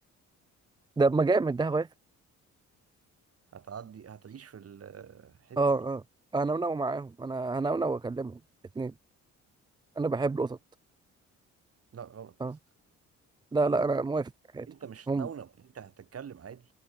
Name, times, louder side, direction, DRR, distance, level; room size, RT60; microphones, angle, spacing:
voice 1, 1.0-1.9 5.6-6.0 6.3-8.4 8.8-8.9 10.0-10.6 12.4-12.6 13.5-14.7 15.1-15.3, right 3 dB, 15° right, 0.4 m, -28 dB
voice 2, 3.5-5.8 11.9-12.5 14.7-16.7, right 7 dB, 50° right, 6.9 m, -45 dB
cardioid pair, 90°, 30 cm